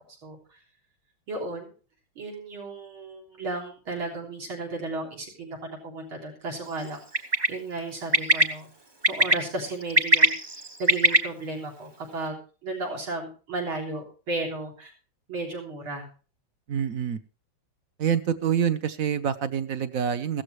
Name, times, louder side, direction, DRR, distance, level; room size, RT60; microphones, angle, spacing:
voice 1, 0.2-0.6 1.3-1.7 2.2-8.7 9.1-12.4 12.6-14.9 15.3-16.1, right 2 dB, 80° right, 0 dB, 4.4 m, -34 dB
Bird, 7.1-7.5 8.1-8.4 9.0-9.3 9.8-11.2, right 1 dB, 30° right, 0.4 m, -18 dB
voice 2, 16.7-17.2 18.0-20.4, right 8 dB, 55° right, 12 dB, 1.0 m, -26 dB
16.0 x 13.5 x 3.2 m, 0.37 s
omnidirectional pair, 2.2 m